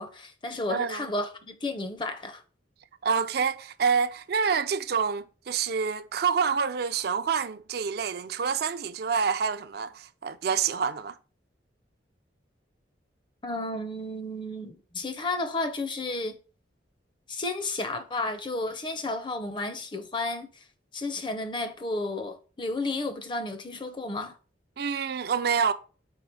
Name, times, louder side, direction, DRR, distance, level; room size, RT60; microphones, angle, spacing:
voice 1, 0.0-2.4 13.4-16.4 17.3-20.5 20.9-24.3, left 2 dB, 25° left, 0.5 m, -32 dB
voice 2, 0.7-1.1 3.0-11.2 24.8-25.7, right 6 dB, 55° right, 0.4 m, -27 dB
4.5 x 4.0 x 5.3 m
head